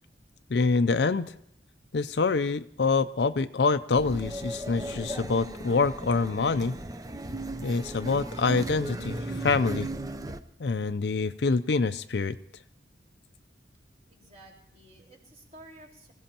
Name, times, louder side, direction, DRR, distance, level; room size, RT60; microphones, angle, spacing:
voice 1, 0.5-1.3 1.9-6.8 7.6-9.9 10.6-12.4, left 4 dB, 65° left, 10 dB, 0.5 m, -26 dB
sound 1, 4.0-10.4, right 1 dB, 20° right, 0.6 m, -36 dB
voice 2, 14.1-16.1, right 1 dB, 40° right, 0 dB, 4.4 m, -52 dB
25.5 x 16.0 x 2.9 m, 0.72 s
head